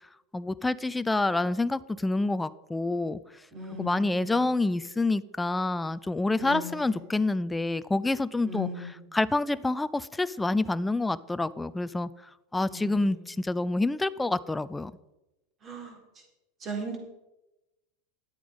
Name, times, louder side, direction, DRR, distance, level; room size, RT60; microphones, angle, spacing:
voice 1, 0.3-3.4 3.8-8.7 9.1-14.9, left 2 dB, 10° left, 15 dB, 0.5 m, -28 dB
voice 2, 3.5-4.3 6.4-7.0 8.4-8.9 12.7-13.0 15.6-16.0 16.6-17.0, right 1 dB, 30° right, 1 dB, 4.0 m, -37 dB
11.5 x 8.5 x 5.5 m, 0.99 s
hypercardioid pair, 110°, 0 cm